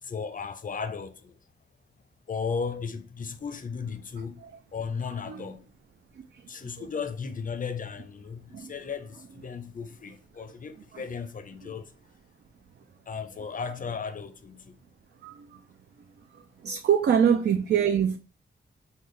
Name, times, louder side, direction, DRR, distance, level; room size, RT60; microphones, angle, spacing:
voice 1, 0.0-1.3 2.3-4.4 4.7-5.7 6.5-11.9 13.1-14.8, left 5 dB, 40° left, 0.5 m, -35 dB
voice 2, 15.2-15.6 16.3-18.2, right 8 dB, 55° right, 0.4 m, -25 dB
3.8 x 2.1 x 3.2 m
cardioid pair, 50°, 21 cm